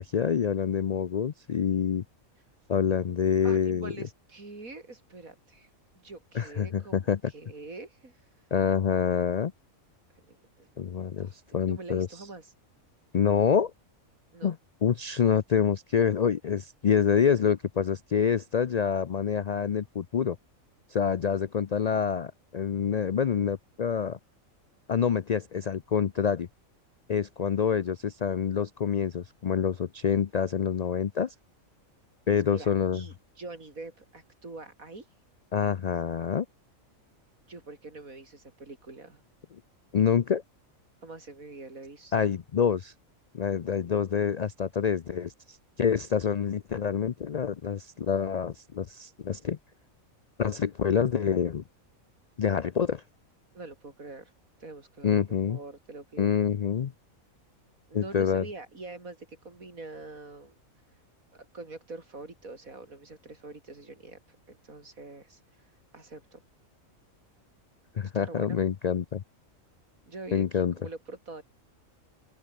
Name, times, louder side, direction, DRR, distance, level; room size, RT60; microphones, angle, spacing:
voice 1, 0.0-2.0 2.7-3.9 6.3-7.2 8.5-9.5 10.8-12.1 13.1-13.7 14.4-14.6 14.8-20.4 20.9-24.2 24.9-26.5 27.1-31.3 32.3-33.0 35.5-36.5 39.9-40.4 42.1-42.9 43.3-49.6 50.4-51.6 52.4-53.0 55.0-55.6 56.2-56.9 57.9-58.4 68.0-69.2 70.3-70.7, left 7 dB, 90° left, 0.3 m, -27 dB
voice 2, 3.4-8.2 10.3-10.8 11.2-12.5 14.3-14.6 32.3-35.1 37.5-39.2 41.0-42.3 53.5-54.3 54.6-56.4 57.9-60.6 61.3-66.4 68.0-68.6 70.1-71.4, right 3 dB, 85° right, 4.5 m, -45 dB
open air
omnidirectional pair, 1.4 m